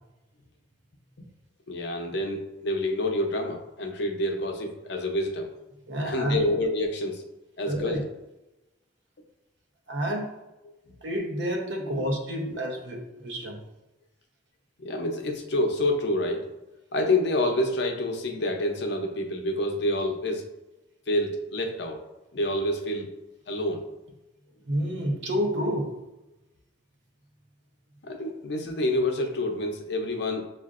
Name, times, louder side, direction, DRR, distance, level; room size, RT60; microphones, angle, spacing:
voice 1, 1.7-5.5 6.0-7.2 7.6-8.0 11.9-12.0 12.4-12.6 14.8-16.5 16.9-20.5 21.1-22.0 22.3-23.1 23.5-23.9 28.0-30.4, left 1 dB, 65° left, 3 dB, 0.6 m, -28 dB
voice 2, 5.9-6.4 7.7-8.0 9.9-10.3 11.0-13.6 24.7-25.9, equal, 70° right, 2 dB, 0.8 m, -29 dB
7.3 x 2.5 x 2.4 m, 1.0 s
head